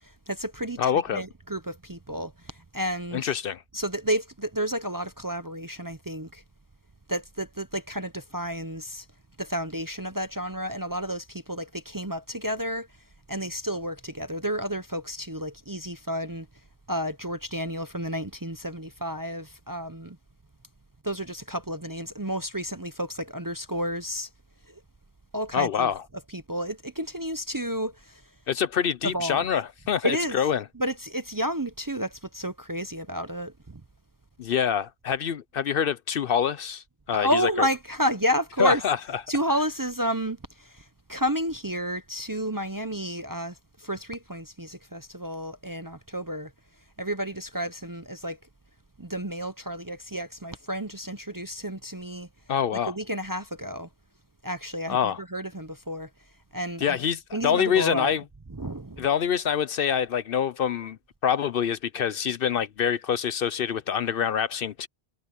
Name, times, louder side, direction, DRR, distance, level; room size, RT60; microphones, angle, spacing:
voice 1, 0.0-3.3 3.7-6.4 7.1-9.1 9.4-12.9 13.3-16.5 16.9-20.2 21.0-24.3 24.7-24.8 25.3-25.9 26.3-28.2 29.0-29.4 30.0-30.4 30.7-33.8 37.1-38.8 39.3-46.5 47.0-48.4 49.0-52.3 52.9-53.9 54.4-56.1 56.5-57.0 57.3-58.1 58.5-59.1, equal, 20° right, 0.7 m, -31 dB
voice 2, 0.8-1.2 3.1-3.6 25.5-26.0 28.5-30.6 34.4-37.7 38.6-39.0 52.5-52.9 54.9-55.2 56.8-58.2 59.0-61.0 61.2-64.9, left 8 dB, 60° left, 0.8 m, -26 dB
omnidirectional pair, 1.1 m